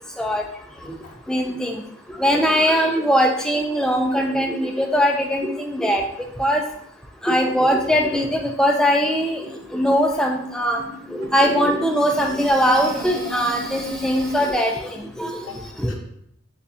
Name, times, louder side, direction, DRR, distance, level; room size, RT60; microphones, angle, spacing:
voice 1, 1.3-1.8 2.2-6.0 6.4-6.6 7.2-9.4 9.7-10.8 11.2-14.7 15.2-15.3 15.8-15.9, equal, 5° left, 1 dB, 0.4 m, -20 dB
sound 1, 8.6-14.5, equal, 55° right, 0.6 m, -37 dB
voice 2, 14.9-15.9, left 4 dB, 85° left, 0 dB, 0.8 m, -43 dB
6.6 x 2.4 x 2.7 m, 0.71 s
head